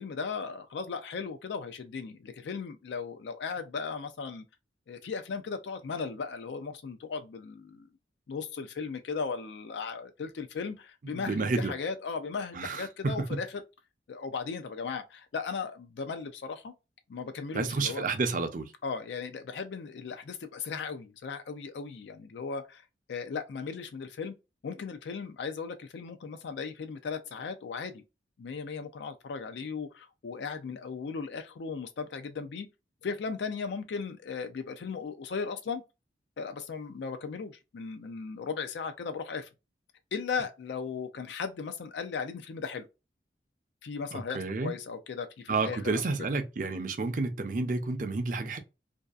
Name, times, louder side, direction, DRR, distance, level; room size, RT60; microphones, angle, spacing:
voice 1, 0.0-4.4 4.9-7.9 8.3-13.6 14.1-16.7 17.1-18.1 18.8-24.3 24.6-28.0 28.4-32.7 33.0-35.8 36.4-39.5 40.1-42.9 43.8-46.0, left 5 dB, 75° left, 0.4 m, -37 dB
voice 2, 11.1-11.7 12.5-13.3 17.5-18.7 44.1-44.7 45.5-48.6, right 3 dB, 45° right, 0.5 m, -30 dB
2.6 x 2.3 x 2.3 m
head